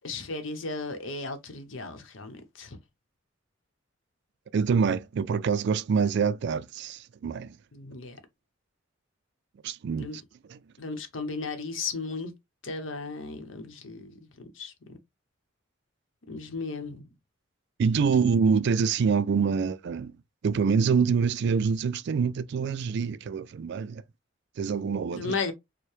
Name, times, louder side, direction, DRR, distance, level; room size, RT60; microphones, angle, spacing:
voice 1, 0.0-2.8 7.7-8.2 10.0-10.2 10.8-12.3 12.6-14.1 14.4-14.7 16.3-17.0 25.1-25.5, left 4 dB, 75° left, 0.8 m, -35 dB
voice 2, 4.5-7.6 9.6-10.1 10.5-10.6 17.8-20.1 20.4-24.0 24.6-25.3, right 5 dB, 60° right, 0.3 m, -25 dB
4.5 x 2.1 x 3.1 m
head